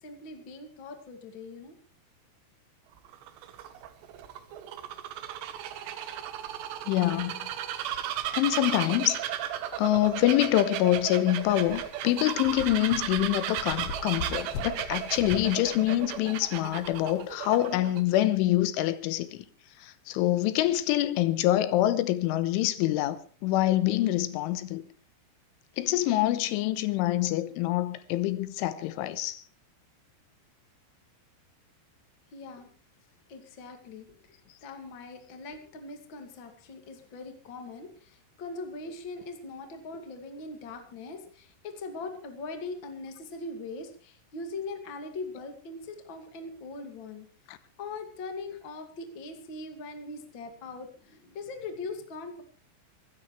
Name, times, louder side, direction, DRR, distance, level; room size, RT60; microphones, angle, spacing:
voice 1, 0.0-1.7 32.3-32.7 33.3-47.3 47.8-52.4, left 3 dB, 35° left, 2.0 m, -41 dB
Bird vocalization bird call bird song, 3.0-18.0, right 11 dB, 70° right, 3.3 m, -35 dB
voice 2, 6.9-7.5 8.3-9.2 9.8-19.5 19.8-24.8 25.8-29.4 47.5-47.6, left 14 dB, 85° left, 3.4 m, -26 dB
sound 1, 11.4-17.3, left 5 dB, 65° left, 2.3 m, -41 dB
26.0 x 13.0 x 3.3 m
omnidirectional pair, 5.5 m